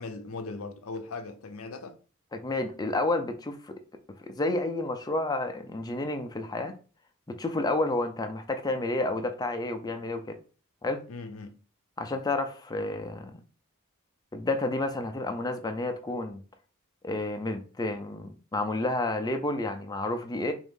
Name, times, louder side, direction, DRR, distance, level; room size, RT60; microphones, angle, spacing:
voice 1, 0.0-2.0 11.1-11.6, left 3 dB, 70° left, 0.6 m, -39 dB
voice 2, 2.3-3.8 4.2-6.7 7.3-10.4 10.8-11.0 12.0-13.4 14.3-16.4 17.0-20.5, left 2 dB, 15° left, 0.4 m, -30 dB
3.6 x 2.6 x 3.7 m
head